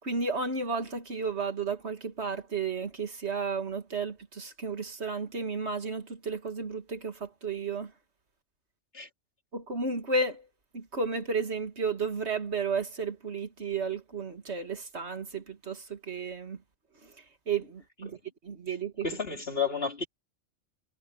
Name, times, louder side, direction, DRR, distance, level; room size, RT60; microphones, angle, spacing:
voice 1, 0.0-7.9 9.5-10.5 10.7-16.6 17.0-18.2 18.4-19.1, right 4 dB, 70° right, 2.3 m, -33 dB
voice 2, 19.0-20.1, left 5 dB, 60° left, 3.5 m, -31 dB
omnidirectional pair, 1.2 m